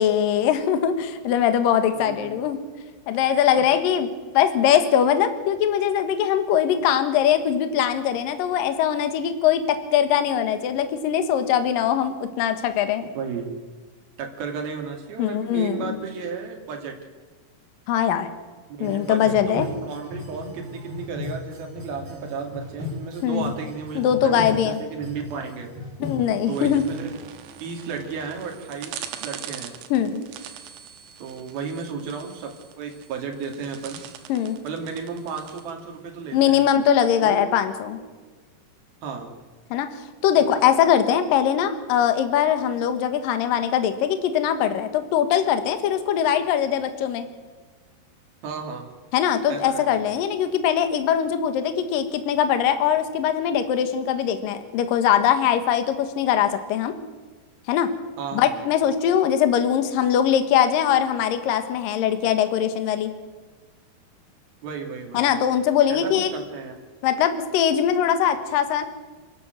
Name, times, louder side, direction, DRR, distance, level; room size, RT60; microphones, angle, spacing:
voice 1, 0.0-2.6 3.1-13.0 15.2-16.0 17.9-18.3 18.8-19.7 23.2-23.5 24.0-24.8 26.0-26.9 29.9-30.2 34.3-34.6 36.3-38.0 39.7-39.9 40.2-47.3 49.1-56.9 57.7-57.9 58.3-63.1 65.1-66.3 67.0-68.8, left 9 dB, 65° left, 9 dB, 2.7 m, -21 dB
voice 2, 1.9-2.3 3.5-3.6 13.0-13.5 14.2-16.9 18.8-25.7 26.5-27.2 27.6-29.7 31.2-32.5 32.8-34.0 34.6-36.7 37.2-37.5 39.0-39.3 40.4-40.5 48.4-48.9 49.5-50.1 58.2-58.6 64.6-65.3 65.9-66.7, right 5 dB, 60° right, 2 dB, 4.4 m, -33 dB
sound 1, 18.8-27.3, left 3 dB, 35° right, 4.5 m, -37 dB
sound 2, 26.5-36.4, right 10 dB, 85° right, 3.7 m, -42 dB
28.0 x 12.0 x 8.0 m, 1.4 s
omnidirectional pair, 5.2 m